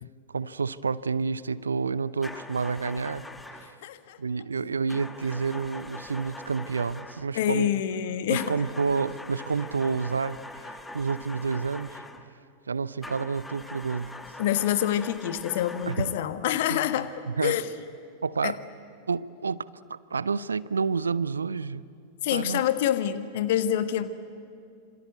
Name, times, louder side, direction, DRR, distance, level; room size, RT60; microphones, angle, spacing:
voice 1, 0.3-3.2 3.6-3.7 4.2-7.7 8.3-12.0 12.7-14.1 15.9-16.1 16.7-16.9 17.3-17.6 18.2-18.6 19.1-21.8 22.3-22.6, right 5 dB, 75° right, 0.6 m, -29 dB
sound 1, 2.2-3.8 4.9-7.3 8.3-12.3 13.0-16.3, left 2 dB, 10° left, 1.5 m, -43 dB
voice 2, 3.8-4.2 7.3-8.5 14.4-17.1 17.4-17.7 18.4-18.6 22.2-24.1, left 11 dB, 55° left, 1.4 m, -26 dB
26.5 x 26.5 x 8.3 m
figure-of-eight pair, 90°, 0 cm